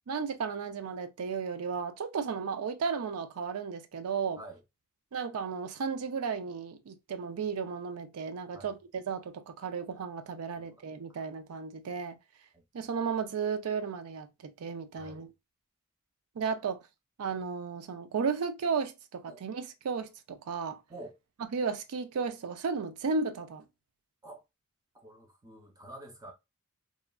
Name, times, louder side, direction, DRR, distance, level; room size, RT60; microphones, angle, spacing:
voice 1, 0.1-4.4 5.1-12.2 12.7-15.3 16.4-16.8 17.2-20.8 21.5-23.6, right 5 dB, 85° right, 0.4 m, -34 dB
voice 2, 15.0-15.3 19.3-19.4 20.9-21.2 24.2-24.4 24.9-26.3, right 1 dB, 15° right, 0.5 m, -48 dB
3.0 x 2.3 x 2.2 m
head